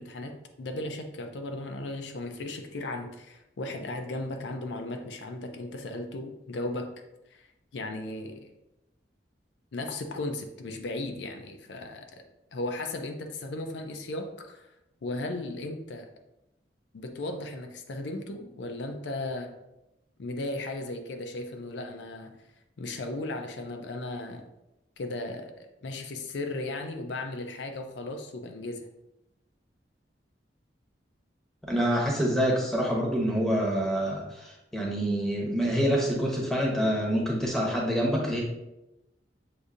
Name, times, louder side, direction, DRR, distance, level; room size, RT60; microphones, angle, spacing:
voice 1, 0.0-6.9 7.3-7.4 7.7-8.5 9.7-12.2 12.5-14.7 15.0-16.1 16.9-19.5 20.2-22.4 22.8-24.5 25.0-28.9, left 2 dB, 75° left, 5 dB, 0.4 m, -36 dB
voice 2, 31.7-38.4, equal, ahead, -2 dB, 0.8 m, -26 dB
6.6 x 2.6 x 2.4 m, 0.93 s
head